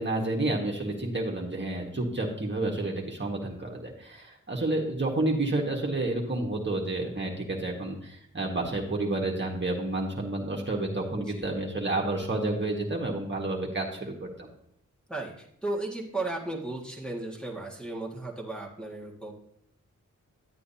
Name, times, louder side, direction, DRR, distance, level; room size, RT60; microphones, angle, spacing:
voice 1, 0.0-14.5, right 2 dB, 35° right, -1 dB, 1.7 m, -30 dB
voice 2, 11.1-11.5 15.1-19.3, right 2 dB, 5° left, -3 dB, 1.8 m, -35 dB
11.0 x 8.3 x 2.8 m, 0.72 s
cardioid pair, 55°, 31 cm